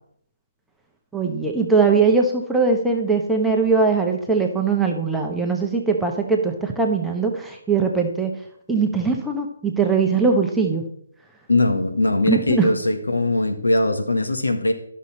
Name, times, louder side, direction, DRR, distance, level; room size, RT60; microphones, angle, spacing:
voice 1, 1.1-8.4 8.7-10.8 12.3-12.7, right 4 dB, 5° right, 1 dB, 1.0 m, -20 dB
voice 2, 11.5-14.7, left 2 dB, 75° left, 5 dB, 1.5 m, -20 dB
11.5 x 6.5 x 4.3 m, 0.70 s
figure-of-eight pair, 145°, 0 cm